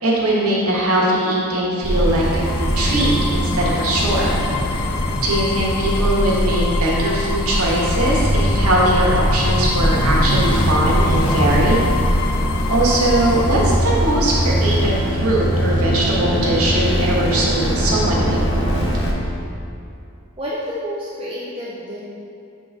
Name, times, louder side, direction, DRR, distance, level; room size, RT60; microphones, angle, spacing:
voice 1, 0.0-2.5 2.8-4.3 4.7-4.8 5.2-11.9 12.2-12.3 12.7-18.4, right 1 dB, 80° right, -5 dB, 1.3 m, -20 dB
sound 1, 1.8-19.1, equal, 50° left, 0.9 m, -21 dB
sound 2, 2.0-13.8, left 5 dB, 90° left, 0.4 m, -28 dB
voice 2, 20.4-22.0, equal, 25° right, -8 dB, 0.6 m, -29 dB
7.4 x 3.9 x 3.9 m, 2.6 s
head